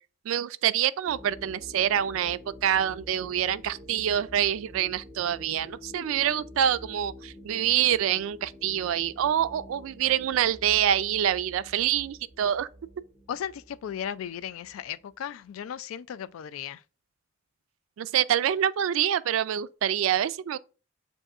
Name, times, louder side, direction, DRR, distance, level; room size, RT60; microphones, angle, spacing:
voice 1, 0.2-12.7 18.0-20.6, right 10 dB, 85° right, 0.3 m, -26 dB
sound 1, 1.1-15.4, left 1 dB, ahead, 0.6 m, -48 dB
voice 2, 13.3-16.8, left 9 dB, 85° left, 0.3 m, -36 dB
7.5 x 2.6 x 2.4 m
head